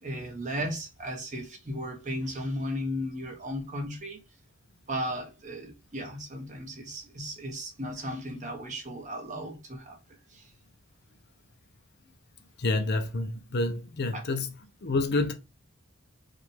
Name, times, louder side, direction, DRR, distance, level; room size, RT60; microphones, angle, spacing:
voice 1, 0.0-4.2 4.9-10.0 10.3-10.5 14.1-14.2, equal, 40° right, 1.3 m, -35 dB
voice 2, 12.6-14.5 14.8-15.3, left 2 dB, 55° left, 0.7 m, -28 dB
4.9 x 2.6 x 3.5 m
head